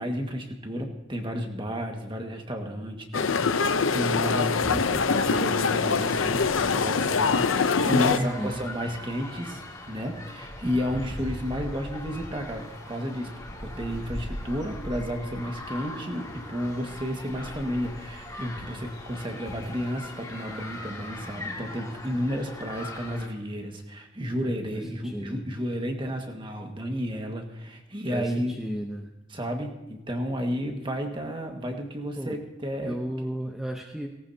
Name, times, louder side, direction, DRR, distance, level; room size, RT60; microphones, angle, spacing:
voice 1, 0.0-13.3 13.6-28.5 29.3-33.0, equal, 25° right, 3 dB, 1.7 m, -32 dB
sound 1, 3.1-8.2, left 5 dB, 85° left, 0.7 m, -24 dB
sound 2, 4.4-23.3, left 1 dB, 20° left, 2.4 m, -40 dB
voice 2, 8.1-8.6 24.7-25.4 28.1-29.1 32.2-32.4 32.8-34.2, equal, ahead, 1 dB, 0.8 m, -33 dB
18.0 x 18.0 x 2.8 m, 0.96 s
head